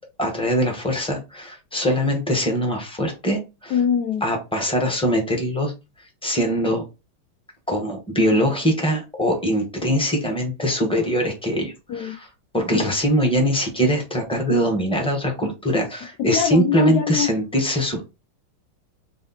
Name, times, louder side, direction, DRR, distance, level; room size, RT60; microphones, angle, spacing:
voice 1, 0.2-3.7 4.2-5.7 6.2-6.8 7.7-12.2 12.5-18.0, equal, 5° left, 0.9 m, -22 dB
voice 2, 3.7-4.2 11.9-12.2 12.7-12.9 13.2-13.3 16.2-17.3, left 8 dB, 75° left, 0.9 m, -23 dB
4.1 x 2.7 x 4.0 m
omnidirectional pair, 2.2 m